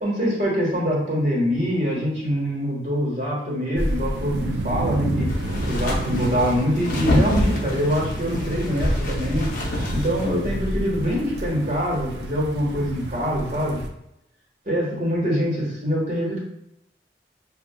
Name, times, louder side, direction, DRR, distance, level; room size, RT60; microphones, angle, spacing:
voice 1, 0.0-5.3 5.6-9.5 9.9-13.8 14.6-16.4, equal, 40° right, -5 dB, 1.4 m, -24 dB
sound 1, 3.8-13.9, right 1 dB, 80° right, 0.5 m, -29 dB
sound 2, 5.3-10.7, left 1 dB, 50° left, 0.7 m, -28 dB
6.9 x 2.4 x 2.3 m, 0.81 s
head